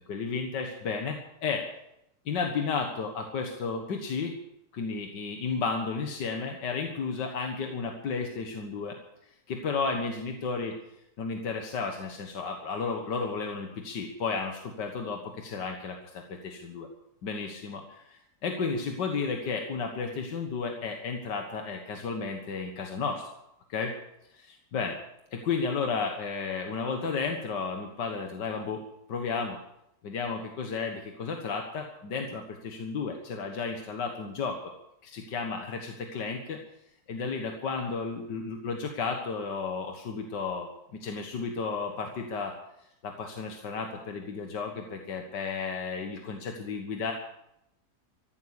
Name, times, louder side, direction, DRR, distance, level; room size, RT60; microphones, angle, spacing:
voice 1, 0.1-1.6 2.3-4.3 4.7-9.0 9.5-10.7 11.2-16.9 17.2-23.3 23.7-23.9 24.3-25.0 25.3-29.6 30.0-34.7 35.0-36.6 37.1-40.7 41.0-42.5 43.0-47.1, left 5 dB, 80° left, 3 dB, 2.1 m, -33 dB
15.0 x 12.0 x 8.2 m, 0.82 s
omnidirectional pair, 1.8 m